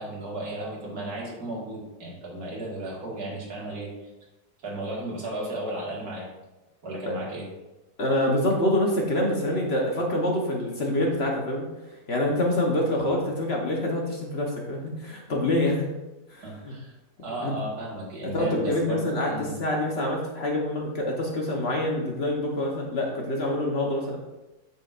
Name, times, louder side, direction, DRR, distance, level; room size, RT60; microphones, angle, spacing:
voice 1, 0.0-4.1 4.6-6.3 6.8-7.5 16.4-19.5, right 1 dB, 65° right, -4 dB, 2.2 m, -35 dB
voice 2, 8.0-11.7 12.1-15.9 16.3-16.7 17.4-17.5 18.3-24.2, left 1 dB, 45° left, -1 dB, 1.2 m, -26 dB
8.8 x 6.3 x 2.5 m, 1.0 s
omnidirectional pair, 1.7 m